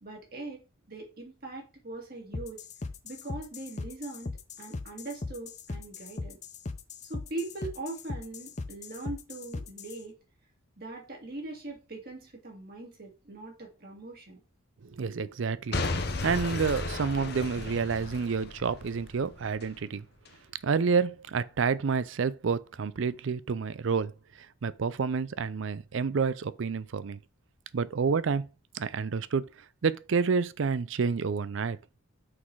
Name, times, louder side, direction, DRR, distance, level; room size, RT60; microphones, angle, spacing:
voice 1, 0.0-2.6 3.0-4.3 4.6-6.4 7.0-10.1 10.8-14.4, right 2 dB, 45° right, 2.1 m, -41 dB
sound 1, 2.3-10.0, left 3 dB, 35° left, 0.5 m, -39 dB
voice 2, 14.8-15.9 16.2-20.1 20.6-24.1 24.6-27.2 27.7-28.5 28.7-29.4 29.8-31.8, right 5 dB, 70° right, 0.4 m, -29 dB
Boom / Shatter / Crushing, 15.7-19.7 20.3-20.4, left 3 dB, 50° left, 0.9 m, -34 dB
6.2 x 4.0 x 4.7 m
head